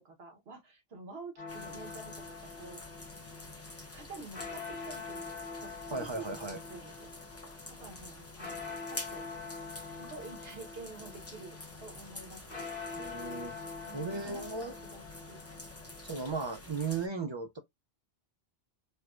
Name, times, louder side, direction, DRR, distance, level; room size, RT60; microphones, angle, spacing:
voice 1, 0.0-2.8 3.9-7.1 7.8-9.3 10.0-13.0 13.9-15.4, right 3 dB, 75° right, 1.3 m, -49 dB
sound 1, 1.4-16.3, left 4 dB, 60° left, 1.2 m, -45 dB
sound 2, 1.5-17.1, left 2 dB, 15° left, 0.6 m, -48 dB
voice 2, 5.9-6.6 13.0-13.6 13.9-14.8 16.0-17.6, right 4 dB, 40° right, 0.4 m, -36 dB
4.4 x 2.2 x 2.4 m
omnidirectional pair, 1.0 m